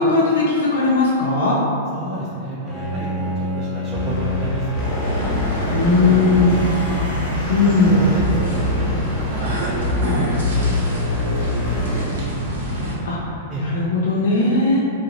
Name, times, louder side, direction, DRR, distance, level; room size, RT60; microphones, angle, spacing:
voice 1, 0.0-1.6 5.7-6.6 7.5-8.0 13.0-13.2 13.6-14.8, left 3 dB, 65° left, -5 dB, 0.5 m, -17 dB
voice 2, 1.9-4.8 5.2-6.0 6.9-7.1 7.6-10.9 11.5-11.6 12.0-12.1 13.5-13.6, right 1 dB, 30° right, -7 dB, 0.5 m, -31 dB
Bowed string instrument, 2.7-9.8, left 1 dB, 20° left, 0.6 m, -30 dB
sound 1, 3.9-12.1, left 2 dB, 35° left, 0.9 m, -25 dB
sound 2, 5.0-13.0, equal, 75° right, 0.8 m, -27 dB
2.8 x 2.1 x 3.8 m, 2.6 s
hypercardioid pair, 100°, 0 cm